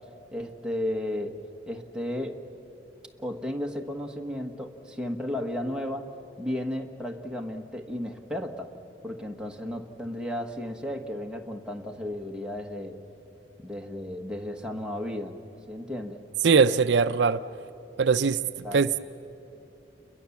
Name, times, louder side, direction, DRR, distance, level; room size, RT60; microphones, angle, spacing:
voice 1, 0.3-1.4 1.7-2.4 3.2-6.1 6.4-8.7 9.0-13.0 13.6-15.3 15.7-16.2 18.6-18.9, left 1 dB, 5° right, 1 dB, 1.4 m, -34 dB
voice 2, 16.4-17.4 18.0-18.4 18.7-19.0, right 5 dB, 70° right, 13 dB, 0.5 m, -21 dB
29.0 x 22.5 x 7.1 m, 2.8 s
head